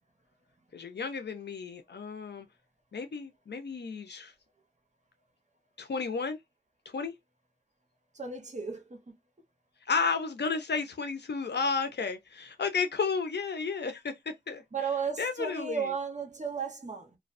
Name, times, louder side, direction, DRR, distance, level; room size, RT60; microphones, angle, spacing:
voice 1, 0.7-2.5 2.9-4.3 5.8-6.4 6.9-7.1 9.9-14.1 14.5-14.6 15.2-15.9, left 5 dB, 90° left, 0.5 m, -32 dB
voice 2, 8.1-9.1 14.7-17.2, right 6 dB, 45° right, 0.8 m, -34 dB
2.4 x 2.2 x 2.5 m
wide cardioid pair, 70°, 17 cm